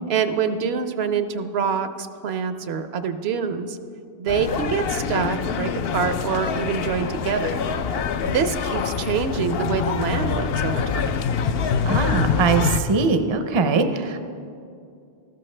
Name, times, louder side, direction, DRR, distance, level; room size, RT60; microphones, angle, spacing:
voice 1, 0.1-3.8 4.2-7.5 8.2-11.2, right 6 dB, 75° right, 9 dB, 0.9 m, -25 dB
sound 1, 4.3-12.8, left 6 dB, 70° left, 0.8 m, -25 dB
voice 2, 11.9-14.2, right 4 dB, 35° right, 8 dB, 0.5 m, -21 dB
13.5 x 13.5 x 3.2 m, 2.4 s
omnidirectional pair, 1.1 m